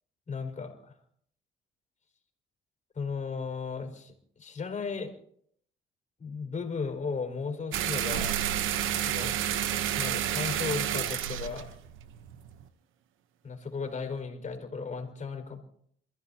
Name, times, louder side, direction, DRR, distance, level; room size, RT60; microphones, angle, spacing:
voice 1, 0.3-0.9 2.9-5.1 6.2-8.3 9.1-9.4 9.9-11.7 13.4-15.6, left 5 dB, 35° left, 4 dB, 4.9 m, -35 dB
sound 1, 7.7-12.6, right 11 dB, 85° right, 1.0 m, -30 dB
28.0 x 15.0 x 2.9 m, 0.64 s
cardioid pair, 90°, 20 cm